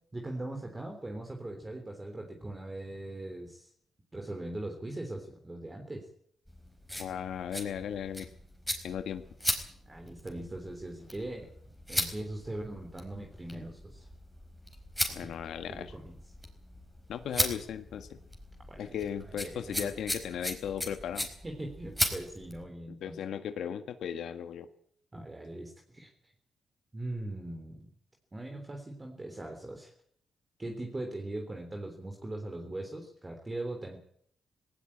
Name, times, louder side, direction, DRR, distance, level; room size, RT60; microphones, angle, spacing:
voice 1, 0.1-3.7 4.1-6.1 9.9-11.5 11.9-14.1 15.1-15.3 15.7-16.1 18.7-19.0 19.3-19.9 21.4-23.2 25.1-26.3 26.9-27.9 28.3-29.9 30.6-34.0, right 1 dB, 20° right, 3 dB, 3.6 m, -40 dB
sound 1, 6.5-22.6, left 1 dB, ahead, 4.6 m, -38 dB
voice 2, 7.0-8.3 8.8-9.2 15.1-15.9 17.1-18.1 18.8-21.3 23.0-24.7, left 8 dB, 80° left, 9 dB, 1.7 m, -36 dB
18.5 x 18.5 x 8.7 m, 0.64 s
cardioid pair, 115°, 0 cm